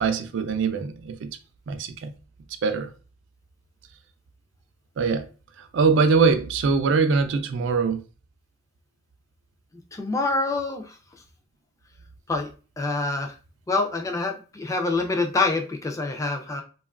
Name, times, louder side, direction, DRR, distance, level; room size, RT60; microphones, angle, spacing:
voice 1, 0.0-1.4 1.7-2.1 2.6-2.9 5.0-5.3 5.6-8.0, right 5 dB, 75° right, 0.4 m, -22 dB
voice 2, 9.9-11.0 12.3-12.5 12.8-13.3 13.7-16.6, left 3 dB, 15° left, 0.3 m, -26 dB
2.8 x 2.3 x 2.3 m
head